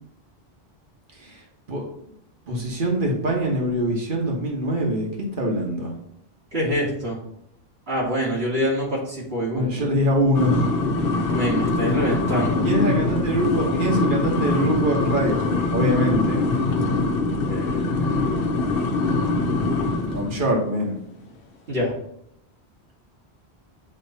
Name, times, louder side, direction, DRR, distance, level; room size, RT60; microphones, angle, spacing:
voice 1, 2.5-5.9 9.5-10.7 12.6-16.4 20.1-21.0, equal, 50° right, -1 dB, 1.5 m, -24 dB
voice 2, 6.5-7.2 7.9-9.6 11.3-12.7 17.4-18.0 21.7-21.9, equal, 70° right, -5 dB, 2.2 m, -25 dB
sound 1, 10.3-20.4, left 3 dB, 65° left, 0.9 m, -23 dB
8.9 x 3.1 x 4.1 m, 0.74 s
omnidirectional pair, 1.1 m